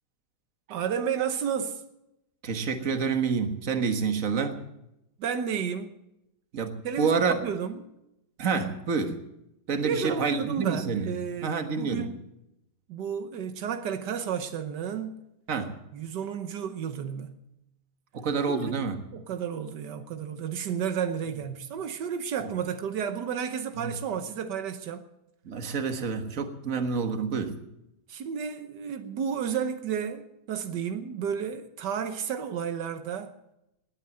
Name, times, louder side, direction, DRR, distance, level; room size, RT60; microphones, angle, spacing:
voice 1, 0.7-1.8 5.2-5.9 6.8-7.9 9.8-12.2 12.9-15.2 15.9-17.4 18.5-18.8 19.1-25.1 28.1-33.3, right 7 dB, 85° right, 1.6 m, -32 dB
voice 2, 2.4-4.6 6.5-7.3 8.4-9.2 9.7-11.1 11.4-12.1 15.5-15.8 18.1-19.0 23.8-23.9 25.5-27.6, right 5 dB, 50° right, 1.8 m, -28 dB
19.0 x 9.1 x 7.6 m
omnidirectional pair, 1.8 m